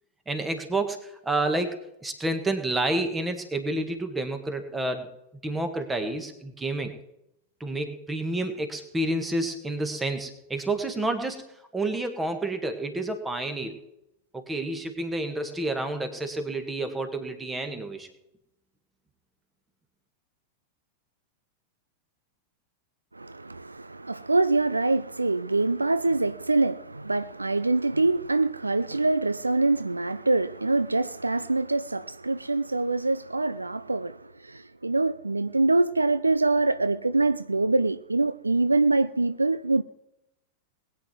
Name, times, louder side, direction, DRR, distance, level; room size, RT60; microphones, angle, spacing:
voice 1, 0.3-1.7 2.0-5.1 5.4-6.9 7.6-11.4 11.7-13.8 14.3-18.1, right 2 dB, 10° right, 1.9 m, -29 dB
voice 2, 23.1-39.8, right 2 dB, 80° right, 0.4 m, -24 dB
20.5 x 9.2 x 4.6 m
figure-of-eight pair, 90°, 0 cm